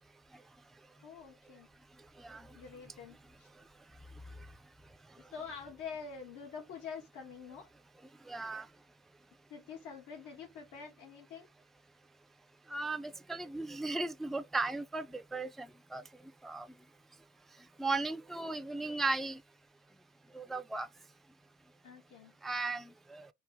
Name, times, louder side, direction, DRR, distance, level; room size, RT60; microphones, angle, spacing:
voice 1, 1.0-1.7 2.5-3.5 5.2-7.7 9.5-11.5 21.8-22.3, left 6 dB, 90° left, 2.0 m, -46 dB
voice 2, 2.2-2.6 8.3-8.7 12.7-16.0 16.4-16.7 17.8-19.4 20.3-20.9 22.4-23.3, right 3 dB, ahead, 0.3 m, -36 dB
4.5 x 2.9 x 3.6 m
cardioid pair, 90°, 30 cm